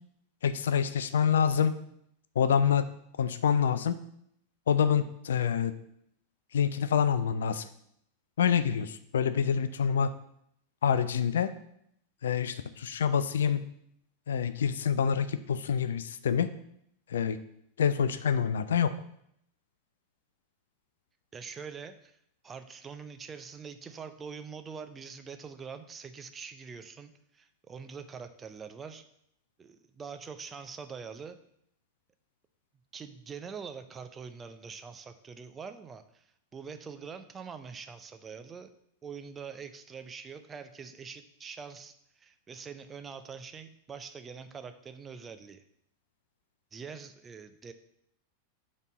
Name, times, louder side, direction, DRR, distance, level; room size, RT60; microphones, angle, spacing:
voice 1, 0.4-1.7 2.4-2.9 3.2-4.0 4.7-5.7 6.5-7.7 8.4-10.1 10.8-11.5 12.2-13.6 14.3-16.5 17.1-17.4 17.8-18.9, left 7 dB, 65° left, 12 dB, 0.4 m, -26 dB
voice 2, 21.3-22.2 22.4-29.0 29.6-31.4 32.9-36.2 36.5-38.7 39.0-45.6 46.7-47.7, right 6 dB, 20° right, 9 dB, 0.5 m, -44 dB
5.2 x 4.2 x 6.0 m, 0.72 s
figure-of-eight pair, 90°, 0 cm